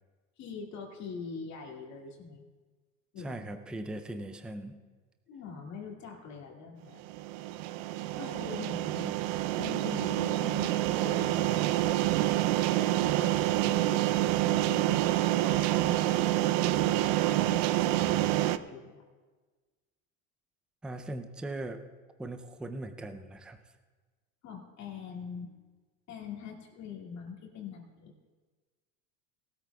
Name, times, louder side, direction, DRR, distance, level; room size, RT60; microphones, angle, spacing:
voice 1, 0.4-2.4 3.1-3.4 5.3-7.0 8.1-9.2 9.6-11.5 12.8-19.0 24.4-25.6 26.1-28.1, left 5 dB, 40° left, -1 dB, 2.2 m, -43 dB
voice 2, 3.2-4.8 20.8-21.8 22.2-23.6, right 2 dB, ahead, 7 dB, 0.4 m, -39 dB
sound 1, 7.1-18.6, right 15 dB, 65° right, 0.6 m, -27 dB
19.5 x 13.0 x 2.3 m, 1.4 s
supercardioid pair, 125°, 40 cm